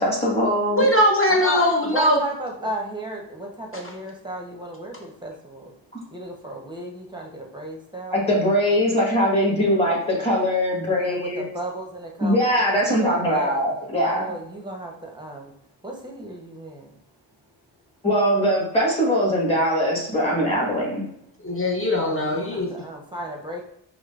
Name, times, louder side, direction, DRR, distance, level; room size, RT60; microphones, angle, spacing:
voice 1, 0.0-0.8 8.1-11.4 12.2-14.2 18.0-21.0, equal, 10° left, -5 dB, 1.4 m, -21 dB
voice 2, 0.7-2.2 21.4-22.7, left 1 dB, 30° left, -1 dB, 0.6 m, -20 dB
voice 3, 1.3-5.7 6.1-8.3 10.9-12.5 13.0-13.6 14.0-15.5 15.8-16.9 22.0-23.6, right 1 dB, 10° right, 1 dB, 0.7 m, -34 dB
4.8 x 2.0 x 2.4 m, 0.74 s
cardioid pair, 70°, 47 cm